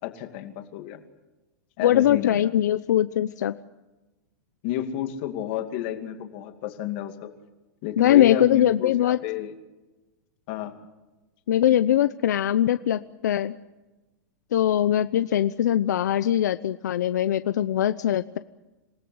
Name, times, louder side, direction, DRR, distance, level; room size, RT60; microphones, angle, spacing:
voice 1, 0.0-1.0 1.8-2.4 4.6-7.3 7.8-9.5 10.5-10.7, left 11 dB, 35° left, 7 dB, 2.4 m, -31 dB
voice 2, 1.8-3.6 8.0-9.2 11.5-13.5 14.5-18.4, left 11 dB, 70° left, 13 dB, 0.8 m, -21 dB
27.5 x 18.0 x 7.9 m, 1.1 s
supercardioid pair, 180°, 10 cm